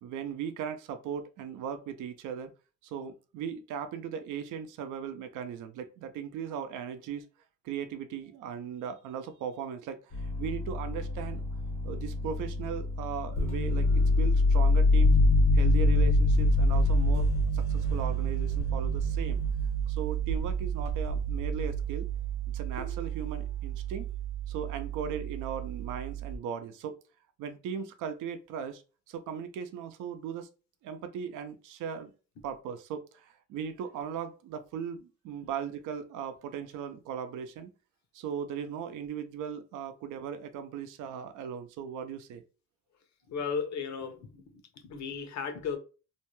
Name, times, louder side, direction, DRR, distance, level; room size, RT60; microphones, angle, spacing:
voice 1, 0.0-2.5 2.8-7.2 7.6-11.4 11.8-15.2 15.5-17.3 17.5-19.4 19.9-22.1 22.5-24.1 24.5-26.9 27.4-28.8 29.1-30.5 30.8-32.1 32.4-37.7 38.1-42.4, right 7 dB, 85° right, 0.5 m, -38 dB
sound 1, 10.1-21.9 22.8-23.1, left 3 dB, 80° left, 1.2 m, -27 dB
Piano, 15.0-26.4, right 7 dB, 40° left, 0.5 m, -31 dB
voice 2, 43.3-44.4 44.8-45.8, left 6 dB, 65° left, 0.8 m, -35 dB
2.6 x 2.2 x 3.0 m
cardioid pair, 90°, 30 cm